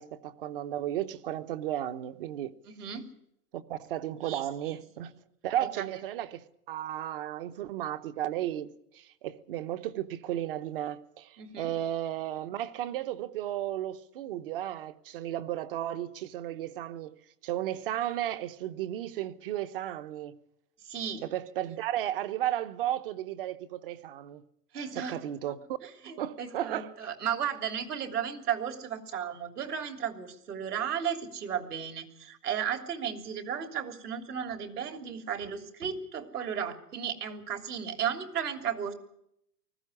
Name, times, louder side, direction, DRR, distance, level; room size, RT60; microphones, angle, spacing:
voice 1, 0.0-2.5 3.5-5.2 5.4-17.2 17.4-20.4 21.2-24.4 24.9-25.6 26.2-27.0, right 12 dB, 35° right, 1.0 m, -34 dB
voice 2, 2.7-3.1 4.2-4.7 5.7-5.9 11.4-11.7 20.8-21.2 24.7-25.2 26.0-38.9, right 8 dB, 70° right, 3.3 m, -34 dB
20.0 x 15.0 x 9.8 m
hypercardioid pair, 145°, 48 cm